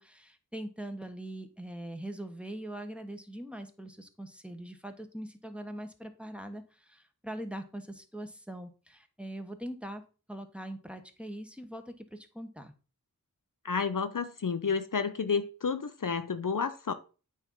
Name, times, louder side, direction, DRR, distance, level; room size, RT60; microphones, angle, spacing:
voice 1, 0.0-10.0 10.3-12.7, right 1 dB, 5° right, 6 dB, 1.2 m, -42 dB
voice 2, 13.6-16.9, left 5 dB, 60° left, 10 dB, 0.6 m, -30 dB
9.0 x 3.5 x 5.3 m, 0.34 s
wide cardioid pair, 45°, 36 cm